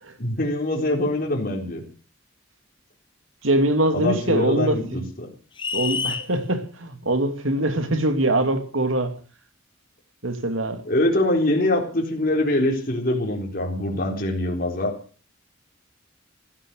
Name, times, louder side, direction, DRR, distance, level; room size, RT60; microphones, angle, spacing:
voice 1, 0.2-1.8 3.9-5.3 10.9-14.9, left 1 dB, 45° left, 4.0 m, -24 dB
voice 2, 3.4-5.0 5.7-9.1 10.2-10.8, right 1 dB, 90° right, 2.7 m, -23 dB
sound 1, 5.6-6.3, left 6 dB, 25° left, 1.0 m, -27 dB
15.0 x 14.0 x 6.6 m
head